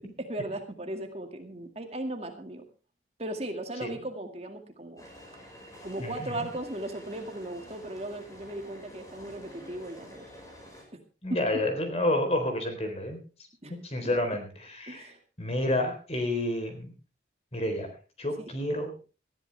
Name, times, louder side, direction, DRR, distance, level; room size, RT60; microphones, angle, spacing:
voice 1, 0.2-2.6 3.2-5.0 5.8-10.3 10.9-11.0 11.3-11.4 13.6-13.8 14.0-14.2 14.9-15.2 18.4-18.5, right 1 dB, 35° right, 5 dB, 2.1 m, -37 dB
sound 1, 5.0-10.8, equal, 20° left, 5.3 m, -49 dB
voice 2, 6.0-6.5 11.2-13.2 13.7-15.1 15.4-16.9 17.5-17.9 18.2-18.9, left 1 dB, 35° left, 6 dB, 3.9 m, -29 dB
20.0 x 14.0 x 3.4 m, 0.35 s
head